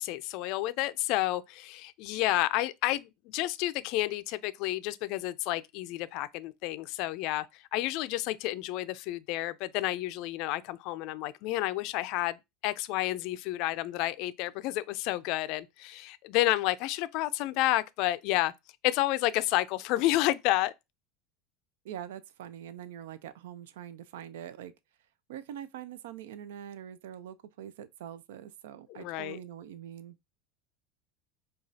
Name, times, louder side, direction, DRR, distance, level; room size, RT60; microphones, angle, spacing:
voice 1, 0.0-18.5 18.8-20.7 28.9-29.4, left 16 dB, 60° left, 0.3 m, -30 dB
voice 2, 21.8-24.7 25.3-30.2, right 10 dB, 85° right, 0.3 m, -44 dB
4.9 x 2.3 x 2.7 m
supercardioid pair, 120°, 0 cm